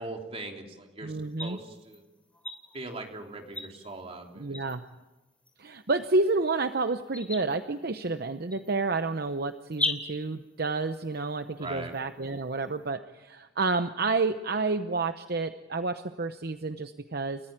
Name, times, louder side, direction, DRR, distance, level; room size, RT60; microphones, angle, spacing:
voice 1, 0.0-1.1 1.4-2.0 2.7-4.6 11.6-11.9, right 2 dB, 35° right, 2 dB, 3.4 m, -40 dB
voice 2, 1.0-1.6 4.4-4.8 5.6-17.4, right 3 dB, 55° right, 9 dB, 0.8 m, -30 dB
sound 1, 1.1-12.9, left 2 dB, 5° left, 3.1 m, -41 dB
30.0 x 14.5 x 9.0 m, 1.1 s
head